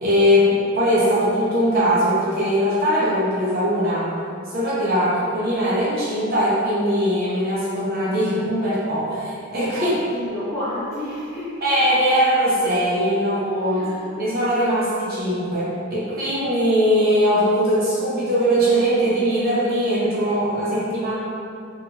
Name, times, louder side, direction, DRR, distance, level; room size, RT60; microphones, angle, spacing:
voice 1, 0.0-4.1 4.5-9.9 11.6-13.8 14.1-21.1, equal, 50° right, -8 dB, 0.6 m, -20 dB
voice 2, 9.7-11.6 13.7-14.1, left 1 dB, 15° left, -14 dB, 1.1 m, -30 dB
2.8 x 2.6 x 2.2 m, 2.5 s
head